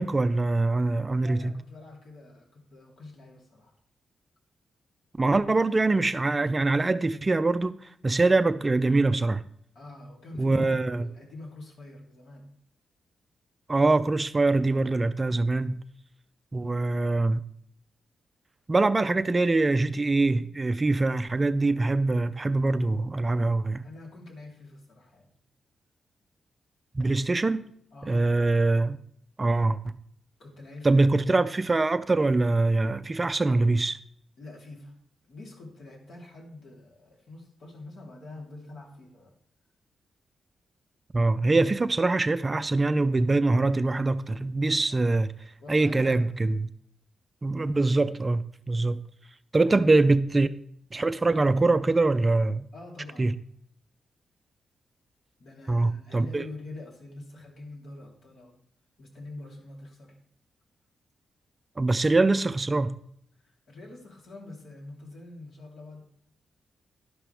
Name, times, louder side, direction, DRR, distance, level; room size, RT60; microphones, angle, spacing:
voice 1, 0.0-1.5 5.2-9.4 10.4-11.1 13.7-15.8 16.5-17.4 18.7-23.8 26.9-27.7 28.1-29.0 29.4-29.9 30.8-34.0 41.1-45.3 45.7-46.6 47.4-49.0 49.5-50.5 50.9-52.7 53.2-53.3 55.7-56.4 61.8-63.0, right 2 dB, 25° right, 0.4 m, -23 dB
voice 2, 1.1-3.8 9.7-12.4 23.8-25.3 27.9-28.3 30.4-31.4 34.4-34.9 35.3-39.3 44.9-45.0 45.6-46.3 49.7-49.8 52.7-53.3 55.4-58.6 59.0-60.2 63.4-66.0, left 2 dB, 65° left, 3.5 m, -45 dB
11.5 x 11.0 x 3.5 m
wide cardioid pair, 135°, 0 cm